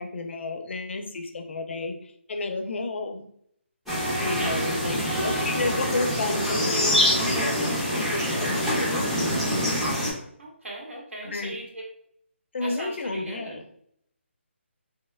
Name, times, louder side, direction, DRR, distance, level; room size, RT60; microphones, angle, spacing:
voice 1, 0.0-3.2 4.1-9.1 11.2-11.6 12.5-13.6, left 3 dB, 65° left, 5 dB, 0.4 m, -32 dB
sound 1, 3.9-10.1, equal, ahead, 0.4 m, -25 dB
voice 2, 6.7-7.3 10.4-11.8 12.6-13.6, right 1 dB, 80° right, -2 dB, 1.0 m, -39 dB
2.7 x 2.1 x 2.2 m, 0.68 s
hypercardioid pair, 165°, 7 cm